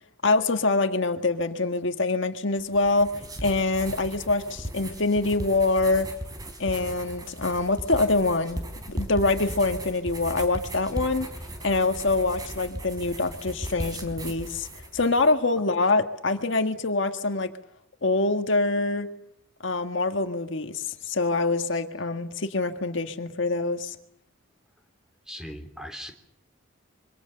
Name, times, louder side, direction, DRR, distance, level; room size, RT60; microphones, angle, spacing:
voice 1, 0.2-3.1 3.4-6.1 6.6-8.6 8.9-11.3 11.6-14.7 14.9-17.5 18.0-19.1 19.6-23.9, left 3 dB, 65° left, 6 dB, 1.7 m, -25 dB
sound 1, 2.6-15.3, right 1 dB, 20° right, 3.8 m, -37 dB
voice 2, 25.2-26.1, equal, 5° right, 5 dB, 3.3 m, -39 dB
26.5 x 24.5 x 6.9 m, 0.74 s
head